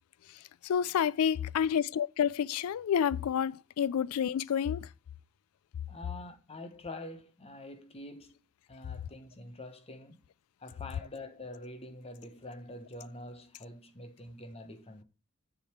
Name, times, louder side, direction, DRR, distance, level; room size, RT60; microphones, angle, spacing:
voice 1, 0.3-4.9, left 8 dB, 70° left, 0.3 m, -29 dB
voice 2, 5.9-8.4 8.7-10.2 10.6-15.0, left 1 dB, 25° left, 1.0 m, -46 dB
10.5 x 3.8 x 4.5 m
head